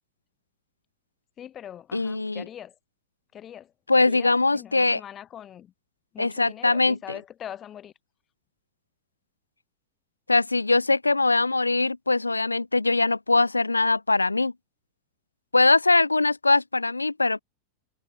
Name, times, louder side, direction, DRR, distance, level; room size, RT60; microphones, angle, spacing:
voice 1, 1.4-2.7 3.3-5.7 6.1-7.9, left 10 dB, 25° left, 5.9 m, -42 dB
voice 2, 1.9-2.4 3.9-5.0 6.2-7.0 10.3-14.5 15.5-17.4, left 3 dB, 80° left, 0.5 m, -22 dB
figure-of-eight pair, 90°, 0 cm